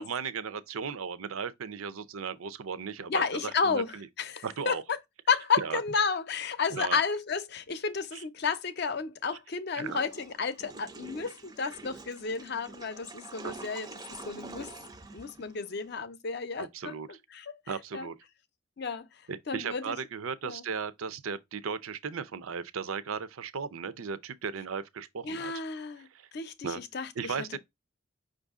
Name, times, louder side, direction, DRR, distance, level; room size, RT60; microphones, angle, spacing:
voice 1, 0.0-4.1 4.4-4.8 5.6-5.8 6.7-7.0 8.1-8.2 9.8-10.0 13.4-13.5 16.6-17.2 17.7-18.2 19.3-25.5 26.1-26.3 26.6-26.8 27.2-27.6, right 6 dB, 85° right, 0.6 m, -36 dB
voice 2, 3.1-4.8 5.3-13.9 14.2-14.7 15.1-16.9 17.3-17.6 17.9-18.1 18.8-19.1 19.5-20.0 20.4-20.6 25.2-26.1 26.3-27.4, left 5 dB, 50° left, 0.6 m, -32 dB
Water / Toilet flush, 9.8-16.0, right 3 dB, 20° right, 0.5 m, -46 dB
5.5 x 2.6 x 3.5 m
head